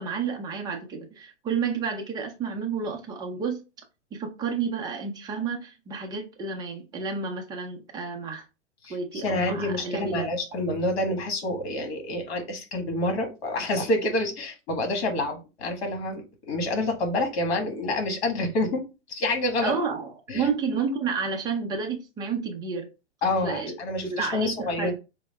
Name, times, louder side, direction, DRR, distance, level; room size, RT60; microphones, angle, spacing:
voice 1, 0.0-3.6 4.1-8.4 8.9-10.3 19.6-22.9 23.4-23.7 24.0-24.9, right 5 dB, 10° right, 0.5 m, -30 dB
voice 2, 8.8-18.8 19.1-19.7 20.3-20.5 23.2-24.9, left 2 dB, 65° left, 1.6 m, -28 dB
4.4 x 2.0 x 3.2 m
hypercardioid pair, 135°, 34 cm